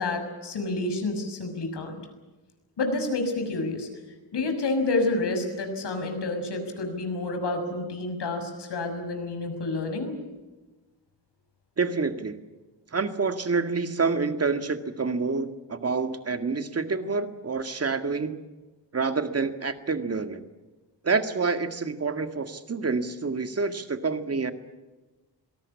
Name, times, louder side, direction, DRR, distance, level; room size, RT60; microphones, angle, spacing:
voice 1, 0.0-2.0 2.8-3.9 4.3-10.2, left 2 dB, 70° left, 6 dB, 6.5 m, -29 dB
voice 2, 11.8-12.4 12.9-18.4 18.9-20.5 21.0-24.5, right 4 dB, 35° right, 8 dB, 2.0 m, -27 dB
26.5 x 18.5 x 8.5 m, 1.2 s
cardioid pair, 105°, 42 cm